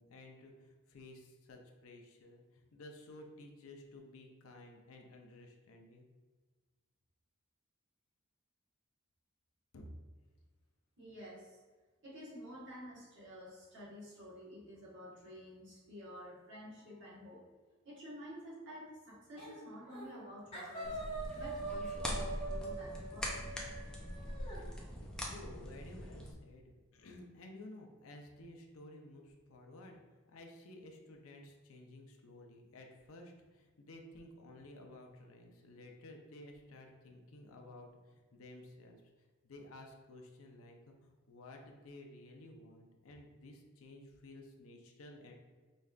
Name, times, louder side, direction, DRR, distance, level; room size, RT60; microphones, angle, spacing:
voice 1, 0.0-6.1 9.7-9.9 24.2-30.0 30.3-45.3, left 1 dB, 75° left, 2 dB, 0.6 m, -54 dB
voice 2, 11.0-11.6 12.0-17.4 17.8-23.6 24.2-24.3 24.7-24.9, equal, 55° right, -6 dB, 1.4 m, -51 dB
sound 1, 19.4-19.6 19.9-20.2 20.5-24.6, right 2 dB, 30° left, 1.3 m, -44 dB
sound 2, 20.8-26.3, equal, 5° left, 0.5 m, -42 dB
5.2 x 3.2 x 2.4 m, 1.4 s
head